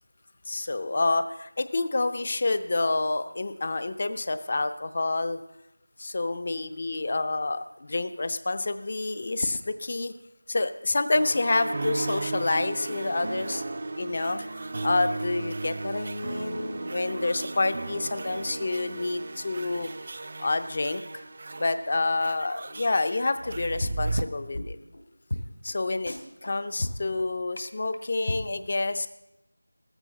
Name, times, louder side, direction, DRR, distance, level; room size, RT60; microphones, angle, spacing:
voice 1, 0.5-5.4 6.0-10.1 10.5-13.6 14.0-14.4 14.8-19.9 20.4-21.2 21.6-24.8 25.6-26.1 26.4-29.1, left 2 dB, 30° left, 12 dB, 0.5 m, -28 dB
sound 1, 11.1-24.2, right 2 dB, 30° right, 0.4 m, -35 dB
sound 2, 23.1-23.6 23.8-24.2 24.5-24.6 24.9-25.0 25.3-25.4 25.7-25.8 26.1-26.5 26.8-27.2 27.6-27.7 27.9-28.0 28.3-28.4, left 1 dB, 75° left, 2.5 m, -32 dB
15.0 x 12.5 x 4.0 m, 0.87 s
figure-of-eight pair, 175°, 0 cm